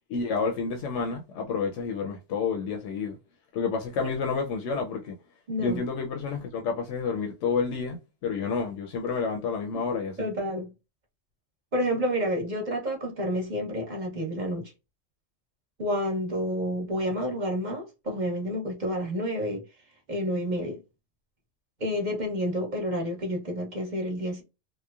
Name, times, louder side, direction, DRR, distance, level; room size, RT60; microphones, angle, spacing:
voice 1, 0.1-3.2 3.5-5.2 5.6-10.3, left 5 dB, 90° left, 0.9 m, -29 dB
voice 2, 5.5-5.8 9.7-9.8 10.2-10.7 11.7-14.7 15.8-19.6 20.1-20.8 21.8-24.4, equal, 45° right, 1.0 m, -29 dB
3.0 x 2.0 x 2.3 m
omnidirectional pair, 1.2 m